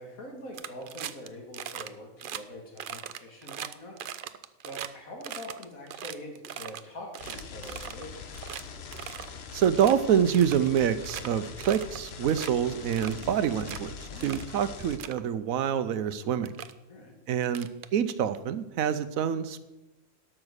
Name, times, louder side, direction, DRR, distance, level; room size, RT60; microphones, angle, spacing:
voice 1, 0.0-4.0 4.6-8.3 14.1-14.4 16.9-17.1, equal, 90° left, 1 dB, 2.6 m, -44 dB
sound 1, 0.5-1.3 1.5-1.9 2.2-2.4 2.8-4.9 5.2-6.8 7.1-8.0 8.3-8.6 8.9-9.3 9.6-9.9 10.3-11.3 11.6-12.0 12.3-12.5 12.9-13.8 14.2-14.5 14.8-15.2 16.0-16.1 16.4-16.7 17.4-18.4, right 9 dB, 60° right, 0.5 m, -39 dB
sound 2, 7.2-15.0, left 6 dB, 55° left, 1.0 m, -43 dB
voice 2, 9.5-13.9 14.2-16.5 17.3-19.6, right 8 dB, 85° right, 13 dB, 1.1 m, -26 dB
12.0 x 6.1 x 6.4 m, 0.99 s
omnidirectional pair, 1.4 m